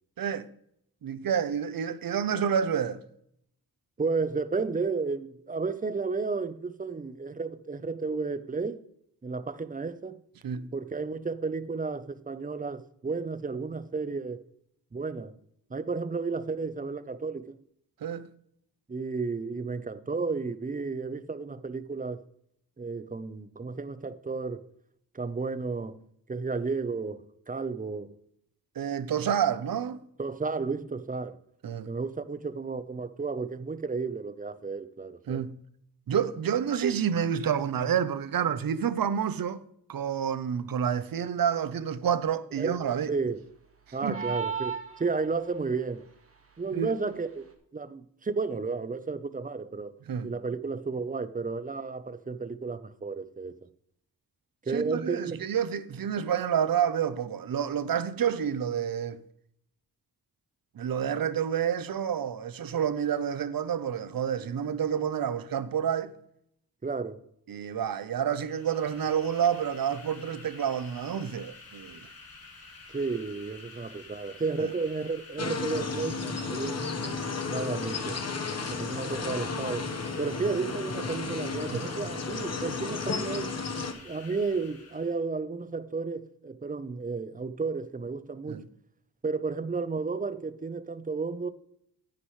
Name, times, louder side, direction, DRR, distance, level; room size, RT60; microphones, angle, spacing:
voice 1, 1.0-3.0 10.4-10.7 18.0-18.3 28.8-30.0 31.6-31.9 35.3-35.5 36.1-39.6 39.9-43.1 44.0-44.1 46.7-46.9 50.1-50.3 54.7-59.2 60.8-66.1 67.5-72.0 74.6-74.7 81.7-81.8 88.5-88.6, right 8 dB, 65° right, 0.8 m, -29 dB
voice 2, 4.0-8.8 9.2-10.2 10.7-14.4 14.9-15.4 15.7-17.5 18.9-22.2 22.8-24.6 25.1-26.0 26.3-28.2 30.2-31.4 31.9-35.4 42.6-43.4 43.9-46.0 46.6-47.4 47.7-49.9 50.2-53.5 54.6-55.4 66.8-67.2 72.9-76.8 77.4-78.2 78.7-83.5 84.0-88.6 89.2-91.5, right 4 dB, 20° right, 0.7 m, -32 dB
sound 1, 44.1-45.6, right 6 dB, 35° right, 1.8 m, -34 dB
sound 2, 68.3-85.2, left 3 dB, 65° left, 3.1 m, -49 dB
sound 3, 75.4-83.9, left 4 dB, 40° left, 1.3 m, -33 dB
9.9 x 9.7 x 3.2 m
cardioid pair, 75°, 38 cm